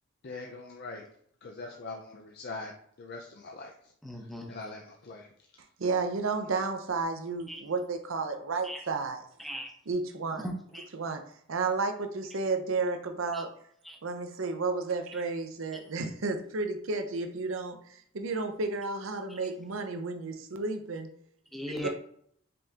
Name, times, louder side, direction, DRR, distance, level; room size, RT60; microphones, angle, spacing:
voice 1, 0.2-1.1 1.4-2.7 3.0-3.7 4.5-5.3, left 3 dB, 50° left, 0 dB, 0.5 m, -42 dB
voice 2, 4.0-4.5 7.5-7.6 8.6-8.9 9.4-9.7 10.4-10.9 13.3-13.4 13.8-14.0 19.3-19.4 21.5-21.9, equal, ahead, 0 dB, 0.8 m, -38 dB
voice 3, 5.8-9.2 9.9-10.5 10.9-11.2 11.5-13.5 14.0-17.8 18.1-21.1 21.8-21.9, right 3 dB, 70° right, 6 dB, 0.7 m, -32 dB
5.2 x 3.5 x 2.8 m, 0.64 s
head